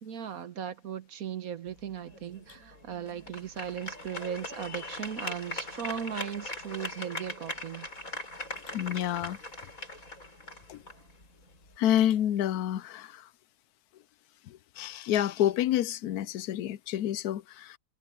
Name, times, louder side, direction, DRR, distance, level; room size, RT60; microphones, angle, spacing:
voice 1, 0.0-7.9, right 8 dB, 70° right, 1.5 m, -37 dB
sound 1, 1.7-11.8, left 1 dB, 60° left, 7.0 m, -41 dB
voice 2, 8.7-9.4 10.7-10.8 11.8-13.3 14.5-17.8, left 11 dB, 85° left, 1.1 m, -28 dB
omnidirectional pair, 1.6 m